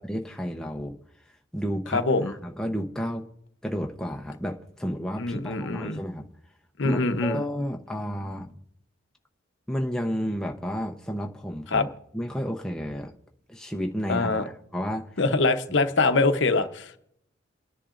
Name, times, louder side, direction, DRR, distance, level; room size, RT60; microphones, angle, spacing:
voice 1, 0.0-1.0 1.5-3.2 3.6-6.2 6.8-8.5 9.7-11.9 12.1-13.1 13.5-15.1, equal, 5° left, 1 dB, 0.7 m, -31 dB
voice 2, 1.9-2.3 5.2-6.0 6.8-7.4 11.7-11.8 14.1-14.4 15.2-16.9, left 3 dB, 70° left, 9 dB, 0.8 m, -23 dB
28.5 x 10.0 x 2.5 m, 0.74 s
head